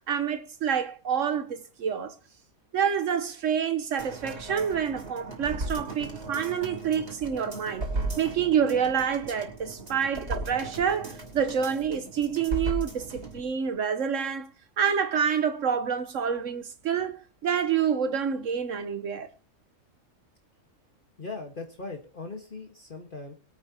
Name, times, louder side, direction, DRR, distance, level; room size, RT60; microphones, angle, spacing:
voice 1, 0.0-2.1 2.7-7.9 8.2-14.5 14.8-19.3, right 7 dB, 80° right, 1.3 m, -27 dB
sound 1, 4.0-13.4 13.8-13.9, right 2 dB, 60° right, 3.3 m, -36 dB
voice 2, 21.2-23.3, left 3 dB, 40° left, 1.7 m, -39 dB
23.5 x 8.4 x 2.8 m
omnidirectional pair, 1.3 m